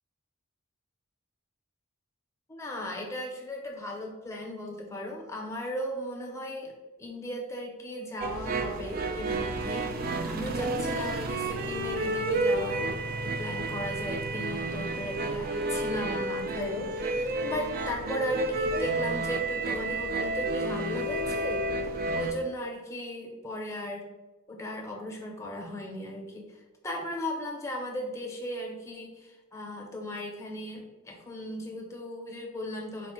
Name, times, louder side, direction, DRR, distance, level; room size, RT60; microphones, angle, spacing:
voice 1, 2.5-6.7 7.0-12.9 13.2-21.6 22.1-24.1 24.5-33.1, equal, 15° left, 0 dB, 0.6 m, -36 dB
sound 1, 8.2-22.3, right 2 dB, 45° right, 0.3 m, -31 dB
4.3 x 2.0 x 4.2 m, 1.2 s
head